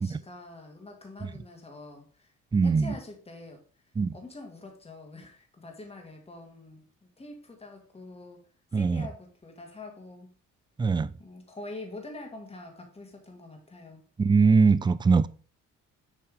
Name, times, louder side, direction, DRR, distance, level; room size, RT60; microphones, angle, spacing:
voice 1, 0.0-2.3 2.6-3.6 4.1-6.8 7.2-8.4 8.7-10.3 11.2-14.0, left 2 dB, 20° left, 2.2 m, -45 dB
voice 2, 2.5-2.9 4.0-4.1 8.7-9.1 10.8-11.1 14.2-15.3, right 4 dB, 15° right, 0.4 m, -22 dB
7.4 x 4.3 x 5.1 m
cardioid pair, 90°, 30 cm